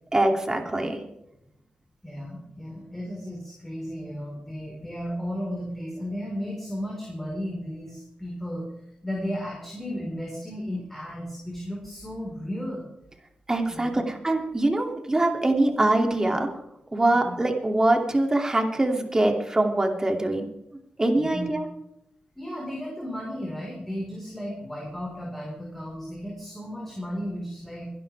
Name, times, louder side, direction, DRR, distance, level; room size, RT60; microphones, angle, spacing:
voice 1, 0.1-1.0 13.5-16.5 16.9-20.5 21.0-21.7, right 2 dB, 20° right, 3 dB, 2.9 m, -23 dB
voice 2, 2.0-8.7 9.0-12.9 13.7-14.1 17.2-17.4 21.1-21.5 22.3-27.9, equal, 10° left, -3 dB, 4.8 m, -34 dB
23.0 x 12.0 x 3.6 m, 0.81 s
wide cardioid pair, 95°, 3 cm